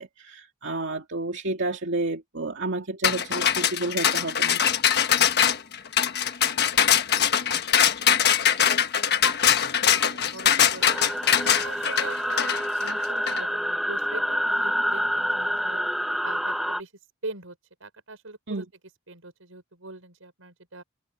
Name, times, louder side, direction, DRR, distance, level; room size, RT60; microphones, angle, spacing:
voice 1, 0.0-4.6 18.5-18.6, right 2 dB, 65° right, 2.5 m, -30 dB
sound 1, 3.0-13.4, left 9 dB, 55° left, 1.3 m, -22 dB
voice 2, 7.1-8.6 9.2-9.6 10.0-11.1 11.6-15.8 16.2-16.9 17.2-18.7 19.1-20.8, right 2 dB, 85° right, 6.2 m, -42 dB
sound 2, 10.8-16.8, equal, ahead, 0.7 m, -27 dB
head